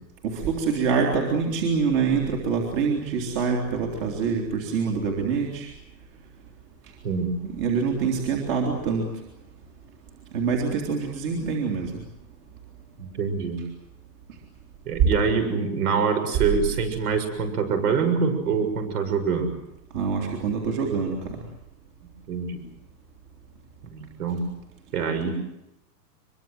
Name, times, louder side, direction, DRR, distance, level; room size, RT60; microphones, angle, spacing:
voice 1, 0.2-5.7 7.4-9.1 10.3-11.9 19.9-21.4, right 5 dB, 30° right, 1 dB, 3.4 m, -25 dB
voice 2, 13.0-13.6 14.9-19.5 22.3-22.6 23.9-24.4 24.9-25.3, right 5 dB, 60° right, 7 dB, 7.0 m, -25 dB
24.0 x 23.0 x 7.9 m, 0.85 s
supercardioid pair, 170°, 50 cm